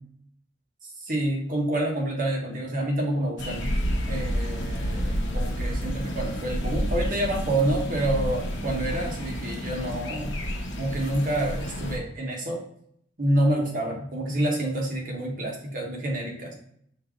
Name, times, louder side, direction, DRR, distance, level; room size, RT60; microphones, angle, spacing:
voice 1, 0.8-3.8 4.1-10.4 10.8-12.6 13.2-16.6, right 1 dB, 50° right, 0 dB, 1.1 m, -28 dB
sound 1, 3.4-12.0, equal, 80° left, 0.8 m, -30 dB
5.4 x 2.4 x 3.6 m, 0.68 s
head